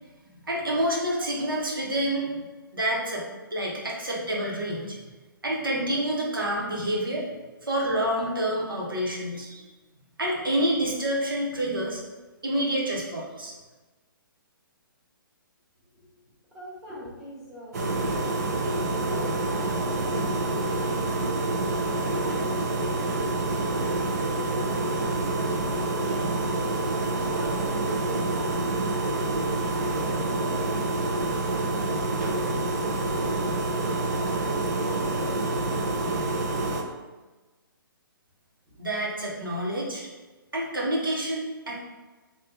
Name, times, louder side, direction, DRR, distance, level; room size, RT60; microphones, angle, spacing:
voice 1, 0.4-2.5 2.7-3.2 3.5-5.1 5.4-7.3 7.6-9.7 10.2-12.0 12.4-13.5 38.8-40.1 40.5-41.8, right 1 dB, 75° right, -4 dB, 1.0 m, -28 dB
voice 2, 15.8-20.4 21.3-25.5 25.9-26.8 27.3-28.3 28.9-34.4 34.8-36.7 38.7-38.8, equal, 5° right, -11 dB, 1.2 m, -44 dB
sound 1, 17.7-36.8, right 2 dB, 45° right, 0.6 m, -27 dB
3.3 x 2.4 x 3.5 m, 1.2 s
figure-of-eight pair, 130°, 12 cm